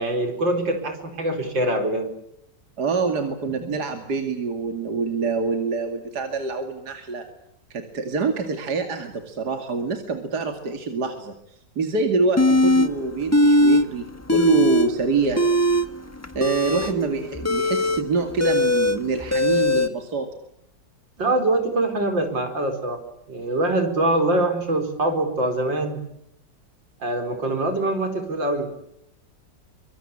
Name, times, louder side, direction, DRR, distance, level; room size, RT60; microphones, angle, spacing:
voice 1, 0.0-2.1 21.2-26.0 27.0-28.7, right 2 dB, 80° right, 6 dB, 5.3 m, -24 dB
voice 2, 2.8-7.2 7.7-11.3 11.8-15.4 16.3-20.3, right 4 dB, 60° right, 6 dB, 2.9 m, -25 dB
sound 1, 12.4-12.9 13.3-13.8 14.1-14.9 15.3-19.9, left 1 dB, 10° left, 1.2 m, -19 dB
24.5 x 24.5 x 8.7 m, 0.75 s
omnidirectional pair, 2.0 m